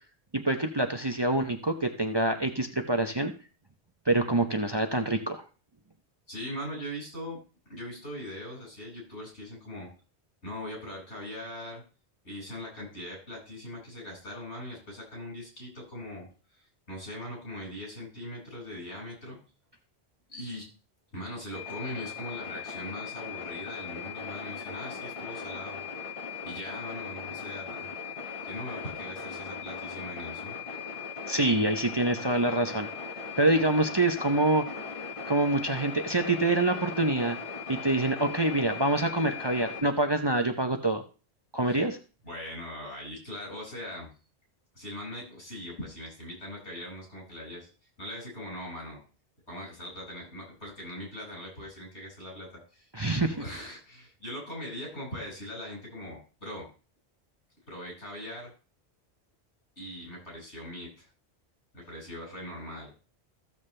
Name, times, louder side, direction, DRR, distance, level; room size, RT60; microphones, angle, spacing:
voice 1, 0.3-3.3 4.1-5.4 31.3-32.9 33.4-34.6 35.3-37.4 37.7-41.0 41.5-42.0 52.9-53.3, right 2 dB, 25° right, 5 dB, 0.7 m, -26 dB
voice 2, 6.3-7.4 7.7-9.9 10.4-11.8 12.2-16.3 16.5-19.4 20.3-20.7 21.1-25.8 26.4-27.9 28.4-30.6 41.7-41.8 42.2-44.1 44.7-47.7 48.0-49.0 49.5-52.9 53.3-56.7 57.7-58.5 59.8-61.1 61.7-62.9, left 1 dB, 85° left, -2 dB, 6.2 m, -41 dB
sound 1, 21.5-39.8, left 6 dB, 30° left, 1.1 m, -39 dB
14.5 x 7.2 x 3.3 m, 0.35 s
omnidirectional pair, 1.1 m